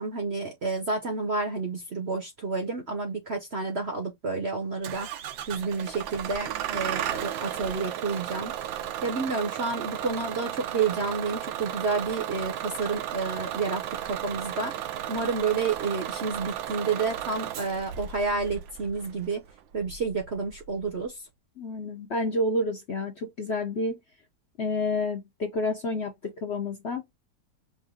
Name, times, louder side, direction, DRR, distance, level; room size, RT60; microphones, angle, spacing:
voice 1, 0.0-5.1 5.5-8.5 9.0-14.7 15.1-19.4 19.7-21.2, right 4 dB, 50° right, 0.9 m, -30 dB
Bus / Engine starting, 4.8-21.1, right 11 dB, 85° right, 1.4 m, -35 dB
voice 2, 21.6-24.0 24.6-27.0, left 2 dB, 50° left, 0.8 m, -29 dB
5.5 x 2.6 x 3.4 m
omnidirectional pair, 2.0 m